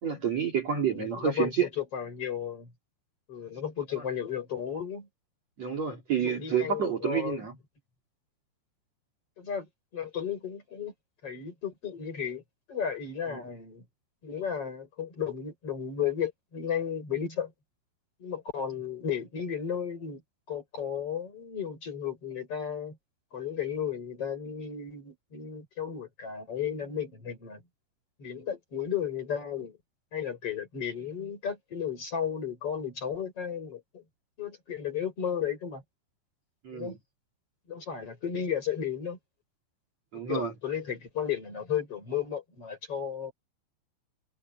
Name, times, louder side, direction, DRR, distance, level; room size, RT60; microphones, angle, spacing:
voice 1, 0.0-1.7 5.6-7.5 36.6-37.0 40.1-40.5, right 8 dB, 40° right, 3.8 m, -29 dB
voice 2, 0.9-2.7 3.3-5.1 6.2-7.4 9.4-10.9 11.2-12.4 12.7-13.8 14.2-17.5 18.2-20.2 20.5-23.0 23.3-27.6 28.2-29.8 30.1-34.0 34.4-35.8 36.7-37.0 37.7-39.2 40.3-43.3, left 8 dB, 30° left, 5.4 m, -34 dB
omnidirectional pair, 5.2 m